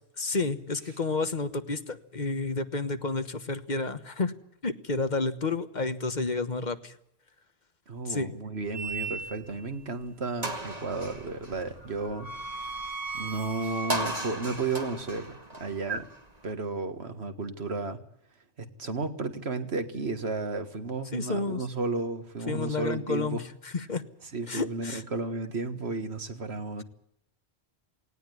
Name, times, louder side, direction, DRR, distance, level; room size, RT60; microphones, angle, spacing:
voice 1, 0.2-4.3 4.6-7.0 8.0-8.3 21.1-21.7 22.5-24.0 24.5-25.0, left 3 dB, 45° left, 10 dB, 1.4 m, -30 dB
voice 2, 7.9-12.3 13.1-16.1 16.4-18.0 18.6-23.4 24.3-26.8, right 3 dB, 75° right, 8 dB, 2.0 m, -33 dB
sound 1, 8.7-9.6 10.0-10.1 10.4-16.5, right 2 dB, 35° right, 2.3 m, -36 dB
18.5 x 17.5 x 9.6 m, 0.72 s
omnidirectional pair, 1.1 m